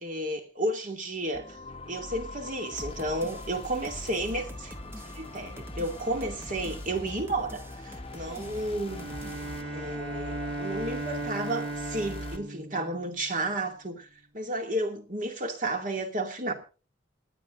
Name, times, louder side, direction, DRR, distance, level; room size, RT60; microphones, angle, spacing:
voice 1, 0.0-1.6 1.9-4.8 5.1-9.1 9.7-14.1 14.3-16.5, right 1 dB, 45° right, 2.4 m, -32 dB
sound 1, 1.3-12.4, left 3 dB, 30° left, 0.9 m, -42 dB
sound 2, 2.8-9.6, equal, 15° right, 1.0 m, -45 dB
Bowed string instrument, 8.9-13.7, right 2 dB, 70° right, 2.0 m, -37 dB
28.5 x 9.7 x 2.6 m
head